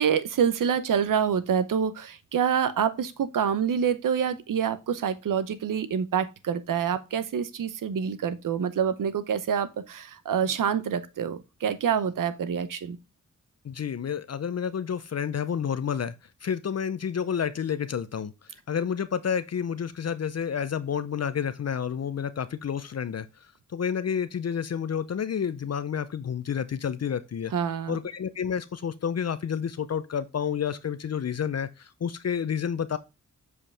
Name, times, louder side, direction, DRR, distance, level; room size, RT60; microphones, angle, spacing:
voice 1, 0.0-13.0 27.5-28.0, right 7 dB, 90° right, 0.8 m, -26 dB
voice 2, 13.6-16.1 16.4-18.3 18.7-23.3 23.7-27.5 27.9-33.0, left 7 dB, 50° left, 0.6 m, -30 dB
7.7 x 4.7 x 3.3 m
cardioid pair, 75°, 31 cm